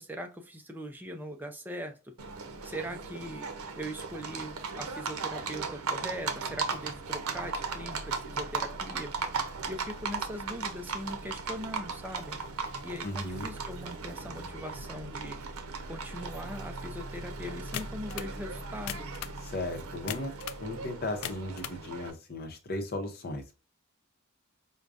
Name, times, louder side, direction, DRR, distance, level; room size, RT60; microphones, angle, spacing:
voice 1, 0.0-2.1 2.6-3.5 3.8-9.2 9.7-12.4 12.8-15.4 15.9-19.1, equal, 10° right, 5 dB, 0.5 m, -40 dB
Livestock farm animals working animals, 2.2-22.1, right 4 dB, 90° right, 0.6 m, -37 dB
voice 2, 13.0-13.5 19.4-20.3 20.6-23.6, left 1 dB, 45° left, 4 dB, 0.8 m, -36 dB
sound 1, 17.7-18.3 18.8-19.4 20.1-20.6 21.1-21.8, left 10 dB, 90° left, 0.4 m, -39 dB
4.7 x 2.2 x 2.5 m, 0.31 s
head